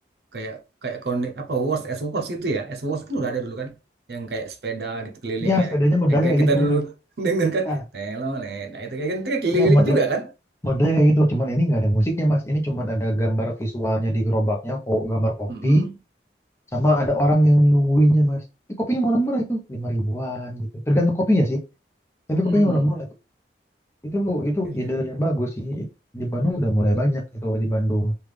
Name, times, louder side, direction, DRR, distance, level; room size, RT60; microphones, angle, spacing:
voice 1, 0.3-3.8 4.1-5.7 6.1-10.3 15.5-16.0 22.4-22.9 24.6-25.0 27.0-27.1, right 3 dB, 65° right, 0.7 m, -26 dB
voice 2, 5.4-6.8 7.7-7.8 9.5-10.0 10.6-15.8 16.7-18.4 18.8-21.6 22.3-23.0 24.0-25.8 26.1-28.1, equal, 15° left, 0.7 m, -21 dB
3.4 x 2.4 x 3.2 m
head